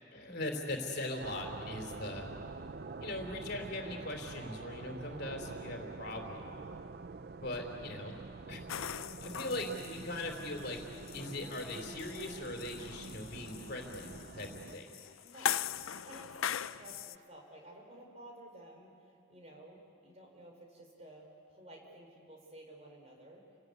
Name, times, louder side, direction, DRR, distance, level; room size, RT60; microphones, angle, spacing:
voice 1, 0.1-2.3 3.0-6.5 7.4-8.2 8.5-8.7 9.2-10.8 11.1-14.9, left 1 dB, 50° left, 3 dB, 3.4 m, -40 dB
sound 1, 1.2-14.8, right 3 dB, 50° right, 0.6 m, -46 dB
sound 2, 8.7-17.2, left 9 dB, 85° left, 0.5 m, -41 dB
voice 2, 15.2-23.5, right 1 dB, 30° right, 1 dB, 4.8 m, -54 dB
30.0 x 19.0 x 9.5 m, 2.6 s
head